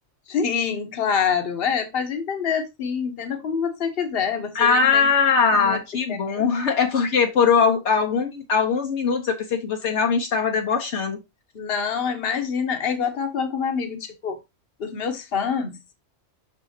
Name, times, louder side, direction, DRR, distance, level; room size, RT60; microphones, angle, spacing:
voice 1, 0.3-5.1 5.5-5.8 6.1-6.5 11.5-14.4 14.8-15.8, left 6 dB, 55° left, 1.2 m, -26 dB
voice 2, 4.5-11.2, left 5 dB, 70° left, 1.2 m, -21 dB
6.3 x 6.2 x 2.8 m
omnidirectional pair, 1.2 m